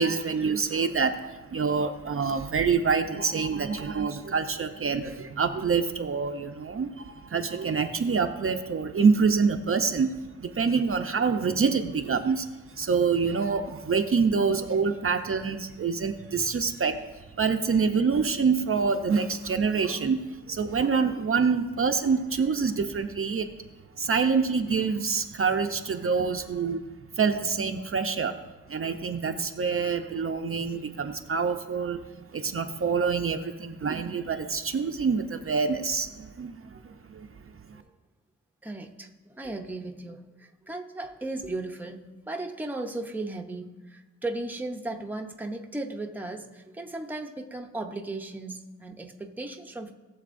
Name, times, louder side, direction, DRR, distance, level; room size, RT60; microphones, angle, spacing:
voice 1, 0.0-23.6 24.0-26.8 27.1-28.4 28.7-37.5, right 5 dB, 45° right, 5 dB, 0.6 m, -26 dB
voice 2, 38.6-49.9, right 2 dB, 5° right, 3 dB, 0.7 m, -36 dB
19.0 x 7.1 x 2.5 m, 1.2 s
wide cardioid pair, 125°, 31 cm